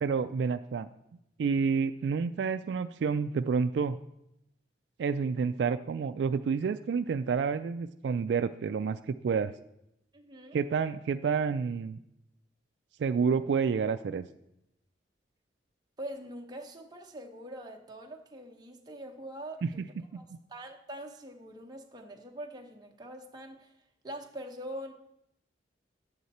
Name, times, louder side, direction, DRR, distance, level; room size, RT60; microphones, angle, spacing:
voice 1, 0.0-0.9 1.4-4.0 5.0-9.5 10.5-12.0 13.0-14.2 19.6-19.9 20.1-20.2, right 5 dB, 65° right, 9 dB, 0.3 m, -29 dB
voice 2, 10.1-10.6 16.0-19.8 20.1-20.2 20.5-23.7 24.0-24.9, right 1 dB, 20° right, 1 dB, 0.9 m, -43 dB
10.0 x 7.9 x 4.2 m, 0.83 s
head